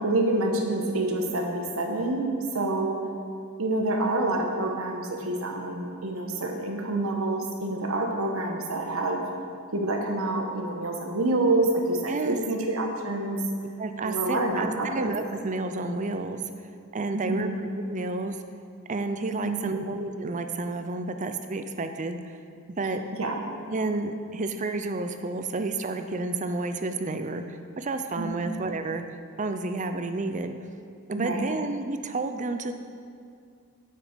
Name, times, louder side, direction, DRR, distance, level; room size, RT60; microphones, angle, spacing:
voice 1, 0.0-3.0 3.6-9.2 9.7-13.4 14.0-15.1 17.1-17.6 19.4-19.8 23.2-23.4 28.2-28.3 31.1-31.4, right 2 dB, 70° right, 1 dB, 1.3 m, -27 dB
voice 2, 13.8-16.4 16.9-17.5 17.7-18.4 18.9-22.4 22.8-23.0 23.7-29.0 29.4-30.5 31.1-32.7, right 3 dB, 35° right, 7 dB, 0.5 m, -30 dB
9.3 x 7.6 x 5.2 m, 2.3 s
head